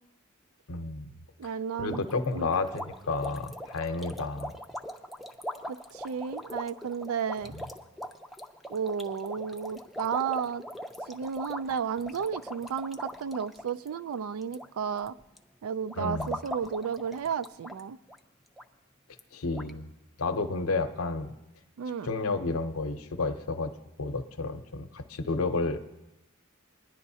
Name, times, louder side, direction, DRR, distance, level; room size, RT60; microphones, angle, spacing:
voice 1, 0.7-1.1 1.4-1.5 1.8-4.5 16.0-16.4 19.3-19.9 20.2-21.3 22.0-23.7 24.0-25.8, left 3 dB, 90° left, 7 dB, 0.7 m, -31 dB
voice 2, 1.4-2.0 2.3-2.5 5.7-7.5 8.7-10.6 11.1-15.2 15.6-18.0 21.8-22.1, right 6 dB, 90° right, 15 dB, 0.4 m, -33 dB
sound 1, 1.9-14.7 14.9-15.4 15.9-17.8 18.1-18.2 18.6-18.7 19.2-19.3 19.5-19.7, equal, ahead, 0.4 m, -41 dB
20.0 x 10.5 x 2.7 m, 0.94 s
head